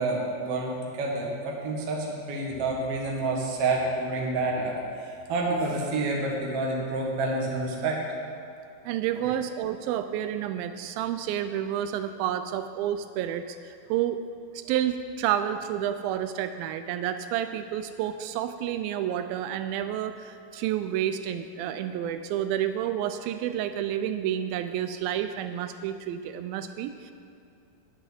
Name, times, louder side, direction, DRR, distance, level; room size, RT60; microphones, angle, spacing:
voice 1, 0.0-8.0 9.1-9.3, right 2 dB, 50° right, -2 dB, 2.0 m, -29 dB
voice 2, 8.9-14.2 14.5-27.1, right 10 dB, 85° right, 10 dB, 2.1 m, -30 dB
10.5 x 6.5 x 9.0 m, 2.6 s
omnidirectional pair, 4.7 m